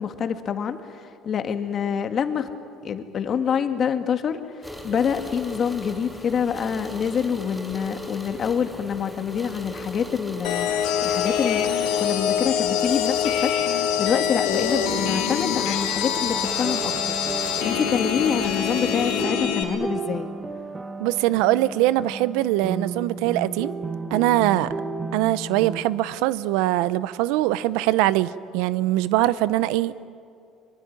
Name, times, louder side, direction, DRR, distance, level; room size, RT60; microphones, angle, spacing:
voice 1, 0.0-2.5 2.8-10.7 11.0-17.2 17.6-20.3, left 7 dB, 45° left, 1.9 m, -26 dB
sound 1, 4.6-19.2, left 1 dB, 5° left, 7.0 m, -38 dB
sound 2, 10.4-19.6, left 8 dB, 85° left, 3.2 m, -25 dB
sound 3, 14.7-25.8, right 3 dB, 20° right, 1.8 m, -34 dB
voice 2, 21.0-23.7 24.1-24.7 25.1-30.1, right 15 dB, 85° right, 0.7 m, -22 dB
23.5 x 23.0 x 10.0 m
cardioid pair, 110°, 0 cm